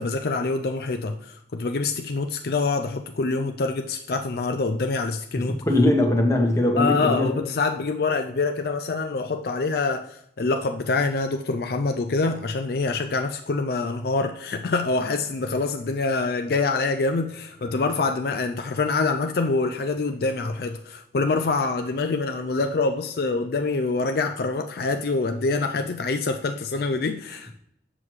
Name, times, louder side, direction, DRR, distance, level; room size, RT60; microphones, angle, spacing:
voice 1, 0.0-5.6 6.8-27.5, left 3 dB, 60° left, 0.4 m, -25 dB
voice 2, 5.7-7.3, left 1 dB, 15° left, 1.2 m, -20 dB
7.4 x 6.2 x 3.2 m
head